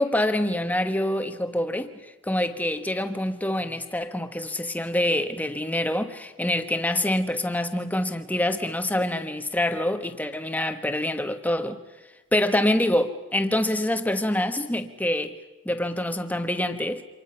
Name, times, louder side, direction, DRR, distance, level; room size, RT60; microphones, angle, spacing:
voice 1, 0.0-11.8 12.3-15.3 15.6-17.0, left 1 dB, 5° left, 8 dB, 1.2 m, -26 dB
28.5 x 26.0 x 5.8 m, 1.1 s
head